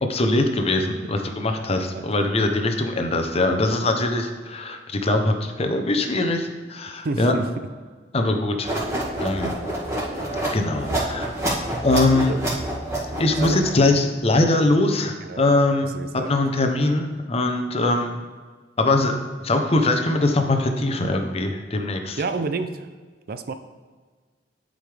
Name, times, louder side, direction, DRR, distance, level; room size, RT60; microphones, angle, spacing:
voice 1, 0.0-7.3 8.1-8.8 9.2-9.5 10.5-11.3 11.8-12.4 13.2-18.1 18.8-22.2, left 2 dB, 35° left, 5 dB, 0.8 m, -22 dB
voice 2, 7.0-7.5 10.9-11.0 12.3-12.4 13.4-13.6 15.2-15.5 15.9-16.3 22.2-22.9 23.3-23.5, right 3 dB, 55° right, 9 dB, 0.5 m, -29 dB
sound 1, 8.6-13.9, right 1 dB, 20° right, 2.2 m, -27 dB
11.5 x 5.1 x 3.4 m, 1.5 s
head